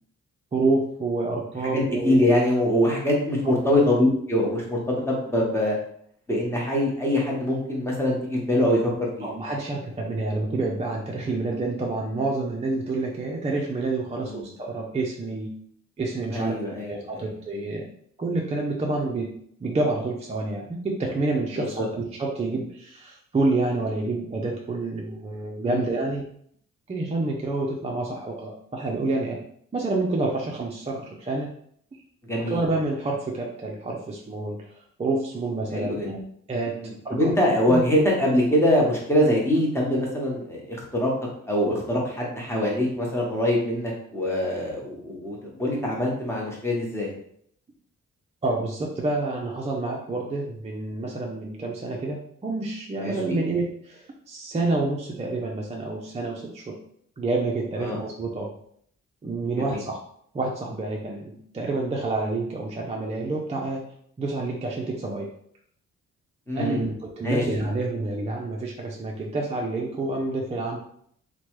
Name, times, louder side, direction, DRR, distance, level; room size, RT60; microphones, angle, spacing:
voice 1, 0.5-2.5 3.4-3.5 9.2-15.5 16.0-17.9 18.2-26.3 26.9-29.4 29.7-31.5 32.5-36.2 36.5-37.4 37.7-37.8 48.4-56.8 57.2-58.5 59.2-60.0 60.3-63.9 64.2-65.3 66.6-70.8, right 2 dB, 20° right, -1 dB, 0.4 m, -28 dB
voice 2, 1.6-5.8 6.3-9.3 14.1-14.4 16.3-17.2 21.6-21.9 25.7-25.8 32.2-32.6 35.7-36.1 36.8-41.1 41.5-47.1 53.0-53.4 57.8-58.0 59.6-59.8 66.5-66.9 67.2-67.4, left 1 dB, 10° left, -3 dB, 1.0 m, -24 dB
3.1 x 2.2 x 3.0 m, 0.65 s
cardioid pair, 85°, 30 cm